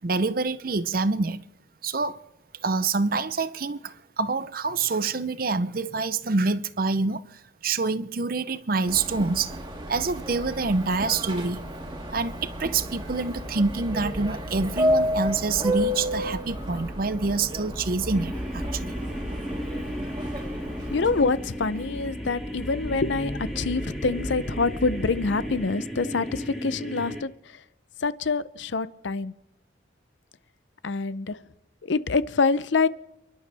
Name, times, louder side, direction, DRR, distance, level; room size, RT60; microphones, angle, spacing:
voice 1, 0.0-1.4 1.8-2.2 2.6-9.6 9.9-11.6 12.1-18.9, right 3 dB, 50° right, 0.7 m, -26 dB
Subway metro underground, 8.9-21.3, equal, 25° right, 2.1 m, -31 dB
sound 1, 11.3-25.7, equal, 15° left, 1.7 m, -39 dB
sound 2, 18.1-27.2, equal, ahead, 2.4 m, -35 dB
voice 2, 20.9-27.3 28.0-29.3 30.8-31.4 31.9-32.9, left 4 dB, 70° left, 0.6 m, -26 dB
30.0 x 12.0 x 3.4 m
head